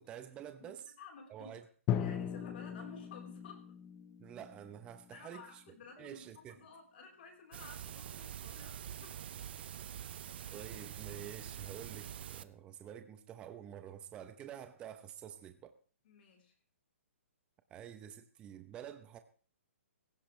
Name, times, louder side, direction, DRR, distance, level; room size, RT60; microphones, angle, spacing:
voice 1, 0.0-0.9 1.3-1.6 4.2-6.6 10.5-15.7 17.7-19.2, right 10 dB, 15° right, 0.8 m, -49 dB
voice 2, 0.6-1.5 1.9-3.7 5.1-9.2 16.0-16.5, left 5 dB, 45° left, 4.0 m, -54 dB
Drum, 1.9-5.7, left 9 dB, 20° left, 0.8 m, -39 dB
sound 1, 7.5-12.4, right 10 dB, 45° right, 0.7 m, -45 dB
16.5 x 15.5 x 3.2 m
hypercardioid pair, 165°, 7 cm